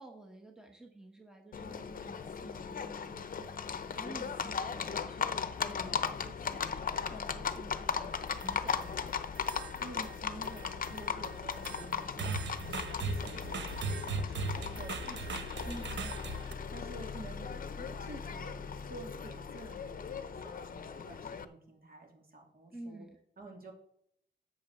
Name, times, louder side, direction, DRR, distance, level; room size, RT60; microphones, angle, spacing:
voice 1, 0.0-9.1 15.6-16.1 22.7-23.2, right 1 dB, 5° right, 3 dB, 1.1 m, -51 dB
Livestock farm animals working animals, 1.5-21.4, left 6 dB, 50° left, 0.7 m, -38 dB
sound 1, 8.1-8.9 9.3-10.2 10.4-16.5, right 4 dB, 75° right, 0.9 m, -39 dB
voice 2, 9.8-18.6 18.9-23.1 23.4-23.7, right 2 dB, 50° right, 1 dB, 2.7 m, -50 dB
8.7 x 7.2 x 6.8 m, 0.72 s
wide cardioid pair, 150°, 19 cm